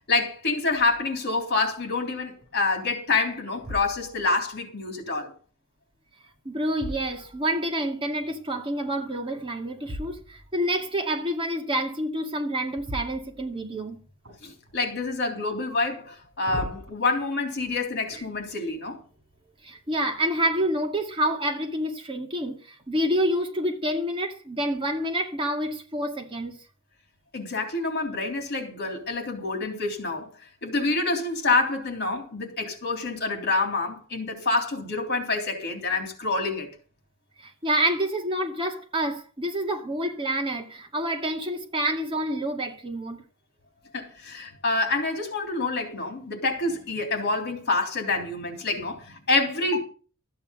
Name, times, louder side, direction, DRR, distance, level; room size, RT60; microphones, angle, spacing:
voice 1, 0.1-5.3 14.4-19.0 27.3-30.3 30.6-36.7 43.9-49.8, left 3 dB, 50° left, 3.4 m, -27 dB
sound 1, 0.7-1.1 1.7-1.8 2.4-3.0 3.5-4.4 6.1-7.8 9.8-10.6 12.7-13.8 14.2-15.0 16.0-16.9, equal, 55° right, 6.8 m, -40 dB
voice 2, 6.4-14.0 18.1-18.2 19.6-26.6 37.4-43.2, right 1 dB, 25° right, 2.2 m, -28 dB
14.0 x 9.4 x 5.3 m
head